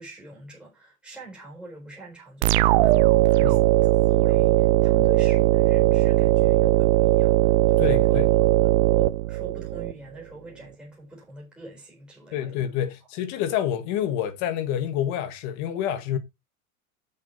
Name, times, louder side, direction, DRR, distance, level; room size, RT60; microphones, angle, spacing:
voice 1, 0.0-3.6 4.1-8.2 8.6-12.5, right 1 dB, ahead, 4.1 m, -43 dB
sound 1, 2.4-9.9, right 16 dB, 45° right, 0.6 m, -19 dB
voice 2, 7.8-8.3 12.3-16.2, left 10 dB, 45° left, 1.7 m, -28 dB
7.4 x 6.5 x 4.2 m
supercardioid pair, 155°, 40 cm